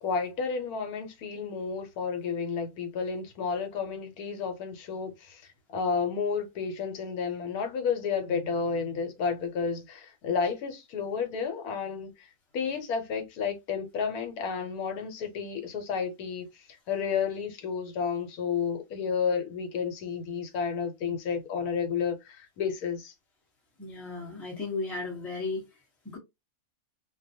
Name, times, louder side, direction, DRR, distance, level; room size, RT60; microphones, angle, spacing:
voice 1, 0.0-5.4 5.7-23.1, left 6 dB, 80° left, 1.2 m, -31 dB
voice 2, 23.8-25.7 26.0-26.2, left 3 dB, ahead, 0.6 m, -35 dB
2.4 x 2.2 x 2.6 m
omnidirectional pair, 1.6 m